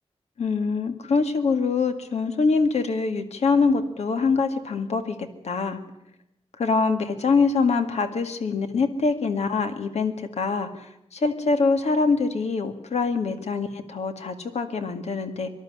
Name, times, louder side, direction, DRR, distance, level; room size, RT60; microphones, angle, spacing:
voice 1, 0.4-5.8 6.6-15.5, left 4 dB, 75° left, 7 dB, 2.1 m, -24 dB
25.0 x 12.0 x 10.0 m, 0.81 s
wide cardioid pair, 175°, 11 cm